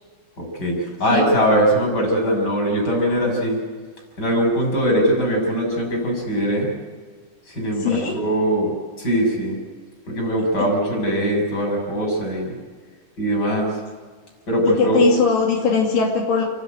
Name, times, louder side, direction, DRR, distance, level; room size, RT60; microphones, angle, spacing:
voice 1, 0.4-3.6 4.2-6.7 7.5-8.7 9.0-9.6 10.1-12.6 13.2-13.8 14.5-15.0, equal, 30° left, 0 dB, 6.8 m, -21 dB
voice 2, 7.8-8.2 10.6-10.7 14.7-16.5, left 5 dB, 80° left, -1 dB, 4.3 m, -20 dB
29.0 x 12.5 x 9.4 m, 1.5 s
omnidirectional pair, 4.0 m